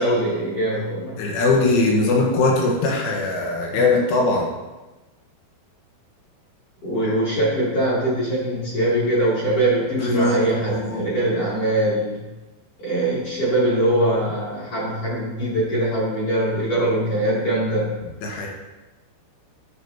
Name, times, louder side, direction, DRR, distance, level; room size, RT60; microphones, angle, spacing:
voice 1, 0.0-1.2 6.8-12.2 12.8-17.9, right 1 dB, 35° left, -9 dB, 3.1 m, -22 dB
voice 2, 1.2-4.5 10.0-10.4 10.7-11.0 18.2-18.5, left 2 dB, 85° left, -1 dB, 3.9 m, -20 dB
10.5 x 7.1 x 2.9 m, 1.1 s
omnidirectional pair, 5.5 m